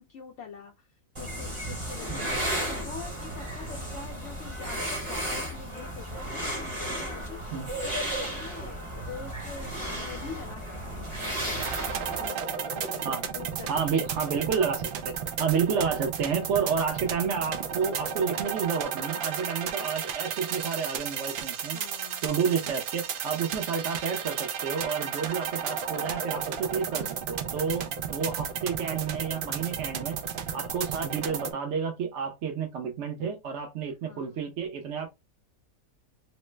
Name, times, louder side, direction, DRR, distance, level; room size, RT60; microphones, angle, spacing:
voice 1, 0.0-11.6 12.2-12.4 12.7-13.1 13.3-13.7 21.6-22.2 34.0-34.4, left 5 dB, 65° left, 0.8 m, -45 dB
sound 1, 1.2-12.3, right 1 dB, 25° right, 0.8 m, -34 dB
voice 2, 2.1-2.4 7.5-7.7 13.0-13.2 13.7-15.1 15.4-21.8 22.2-30.2 30.5-35.1, right 6 dB, 60° right, 0.9 m, -30 dB
sound 2, 11.6-31.5, right 7 dB, 85° right, 0.4 m, -33 dB
3.1 x 2.0 x 3.1 m
omnidirectional pair, 1.5 m